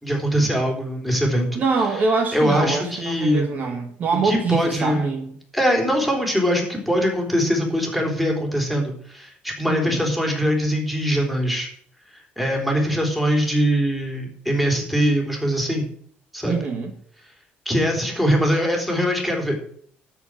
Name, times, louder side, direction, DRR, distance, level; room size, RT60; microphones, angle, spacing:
voice 1, 0.0-1.6 2.3-3.5 4.2-5.1 5.5-11.7 12.4-15.9 16.3-16.6 17.7-19.6, equal, ahead, 3.7 m, -22 dB
voice 2, 1.5-5.3 9.7-10.1 16.5-16.9, right 4 dB, 45° right, 1.6 m, -24 dB
13.0 x 5.2 x 8.9 m
cardioid pair, 130°, 4 cm